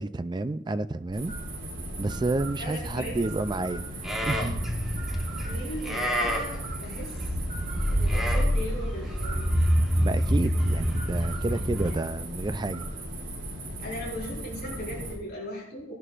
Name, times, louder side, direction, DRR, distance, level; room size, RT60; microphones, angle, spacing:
voice 1, 0.0-1.3 2.0-4.6 10.0-12.9, right 2 dB, 20° right, 0.4 m, -30 dB
sound 1, 1.1-15.1, right 1 dB, 70° right, 4.3 m, -37 dB
voice 2, 2.6-3.2 5.5-7.2 7.9-9.5 11.9-12.0 13.8-15.9, equal, 50° left, 4.8 m, -38 dB
Livestock farm animals working animals, 4.0-11.9, equal, ahead, 1.4 m, -27 dB
18.0 x 11.0 x 2.5 m
head